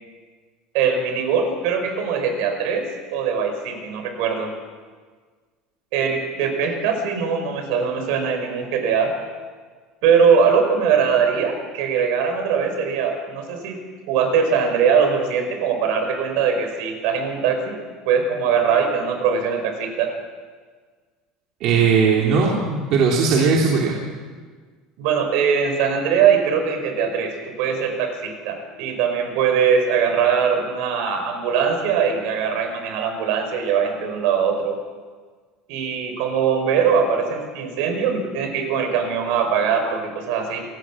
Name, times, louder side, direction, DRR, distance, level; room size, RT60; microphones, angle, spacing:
voice 1, 0.7-2.9 3.1-4.5 5.9-9.1 10.0-13.8 14.1-17.8 18.1-20.1 25.0-27.3 27.6-34.8 35.7-40.6, right 6 dB, 65° right, 6 dB, 5.3 m, -21 dB
voice 2, 21.6-24.0, right 5 dB, 45° right, -2 dB, 3.3 m, -18 dB
27.5 x 18.5 x 7.5 m, 1.5 s
cardioid pair, 170°, 0 cm